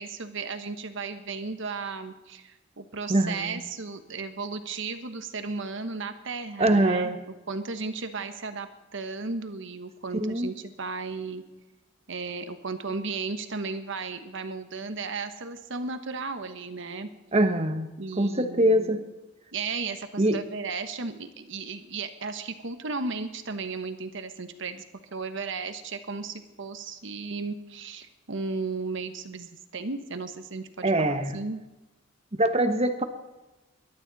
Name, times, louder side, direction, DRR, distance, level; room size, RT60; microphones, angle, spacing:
voice 1, 0.0-7.2 7.5-11.4 12.1-17.1 18.0-19.0 19.5-24.8 25.1-31.6, right 4 dB, 65° right, 9 dB, 1.3 m, -35 dB
voice 2, 3.1-3.6 6.6-7.2 10.2-10.5 17.3-19.0 20.2-20.4 30.8-31.4 32.4-33.0, right 1 dB, 30° right, 8 dB, 1.3 m, -23 dB
21.0 x 12.0 x 4.2 m, 1.1 s
head